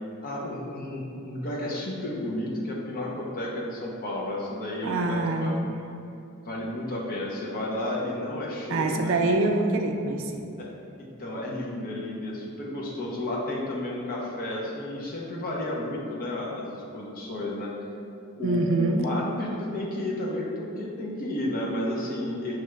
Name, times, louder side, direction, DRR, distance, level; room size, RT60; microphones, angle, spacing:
voice 1, 0.2-5.5 6.5-9.2 10.6-10.7 11.0-17.7 18.4-22.6, left 1 dB, 40° left, -3 dB, 0.7 m, -32 dB
voice 2, 4.8-5.6 8.7-10.4 18.4-19.0, right 2 dB, 60° right, 4 dB, 0.4 m, -25 dB
6.1 x 2.3 x 3.1 m, 2.6 s
head